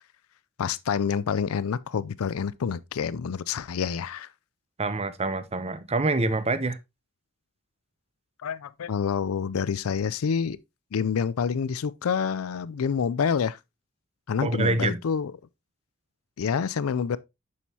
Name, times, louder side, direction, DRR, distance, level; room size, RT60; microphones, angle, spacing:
voice 1, 0.6-4.3 8.4-10.6 10.9-13.6 14.3-15.3 16.4-17.2, left 6 dB, 85° left, 0.4 m, -27 dB
voice 2, 4.8-6.8 14.4-15.0, right 2 dB, 30° right, 0.7 m, -26 dB
7.1 x 6.4 x 2.8 m
head